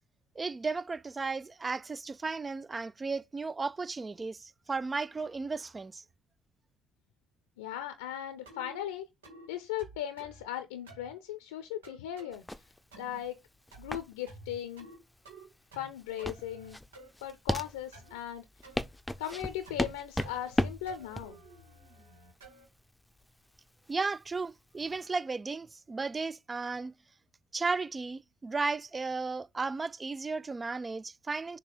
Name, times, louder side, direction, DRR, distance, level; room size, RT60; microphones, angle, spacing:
voice 1, 0.4-6.0 23.9-26.9 27.5-31.6, right 4 dB, 30° right, 0.4 m, -34 dB
voice 2, 7.6-9.1 9.5-12.4 13.0-13.4 13.8-14.9 15.8-16.8 17.2-18.5 19.2-21.4, left 11 dB, 85° left, 0.6 m, -38 dB
sound 1, 8.5-8.8 9.2-9.5 9.8-10.4 10.9-11.1 11.8-12.3 12.9-13.2 13.7-14.0 14.3-15.0 15.3-15.9 16.2-17.1 17.9-18.2 18.6-18.8 19.3-19.9 20.2-20.6 20.9-22.7, right 2 dB, 90° right, 1.8 m, -51 dB
sound 2, 12.3-25.0, left 1 dB, 10° left, 0.6 m, -37 dB
6.7 x 2.8 x 5.4 m
hypercardioid pair, 50°, 0 cm